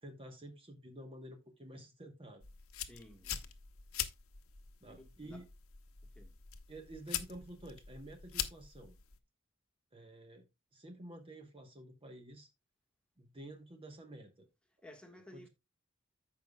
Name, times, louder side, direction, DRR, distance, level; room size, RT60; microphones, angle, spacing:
voice 1, 0.0-2.5 4.8-5.5 6.7-9.0 9.9-12.5 13.2-14.5 15.3-15.5, right 1 dB, 25° right, 1.0 m, -51 dB
sound 1, 2.4-9.2, left 10 dB, 80° left, 1.0 m, -43 dB
voice 2, 2.7-3.5 4.9-5.5 6.0-6.3 14.8-15.5, left 1 dB, 5° left, 1.5 m, -56 dB
14.5 x 5.4 x 2.2 m
head